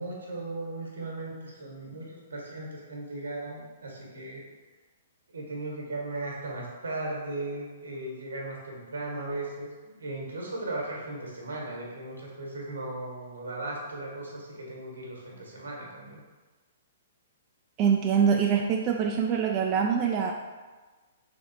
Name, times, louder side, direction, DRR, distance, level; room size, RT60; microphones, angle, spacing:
voice 1, 0.0-4.4 5.3-16.2, right 2 dB, 80° right, -2 dB, 1.1 m, -37 dB
voice 2, 17.8-20.3, right 7 dB, 35° right, 1 dB, 0.3 m, -24 dB
3.5 x 3.4 x 2.7 m, 1.3 s
hypercardioid pair, 120°, 0 cm